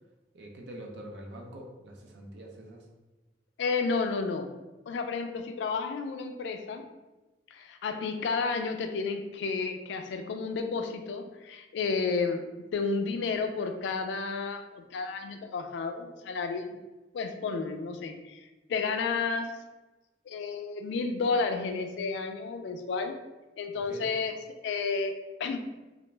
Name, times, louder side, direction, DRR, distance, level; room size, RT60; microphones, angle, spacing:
voice 1, 0.3-2.9 23.7-24.1, right 1 dB, 75° right, 1 dB, 0.5 m, -44 dB
voice 2, 3.6-4.5 4.9-6.8 7.5-12.4 12.7-16.8 17.1-18.4 18.7-19.5 20.3-23.2 23.6-24.3 24.6-25.1 25.4-25.6, left 4 dB, 85° left, 7 dB, 0.3 m, -31 dB
2.4 x 2.1 x 3.1 m, 1.1 s
head